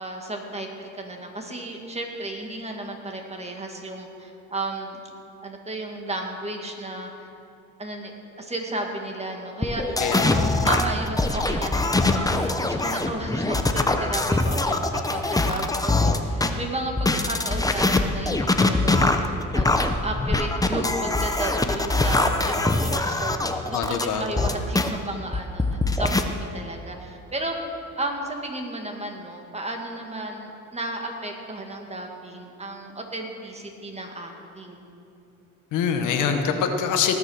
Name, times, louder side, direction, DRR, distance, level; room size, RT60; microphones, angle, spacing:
voice 1, 0.0-5.0 5.4-7.3 7.8-8.1 8.4-9.9 10.3-19.1 19.5-27.6 28.0-34.8, right 1 dB, 20° right, 2 dB, 2.0 m, -33 dB
sound 1, 9.6-16.5 17.0-24.9 25.3-26.2, left 2 dB, 10° left, 0.8 m, -23 dB
voice 2, 10.0-10.5 23.7-24.2 35.7-37.2, left 7 dB, 90° left, 5 dB, 1.2 m, -24 dB
19.0 x 7.4 x 6.4 m, 2.6 s
cardioid pair, 90°, 30 cm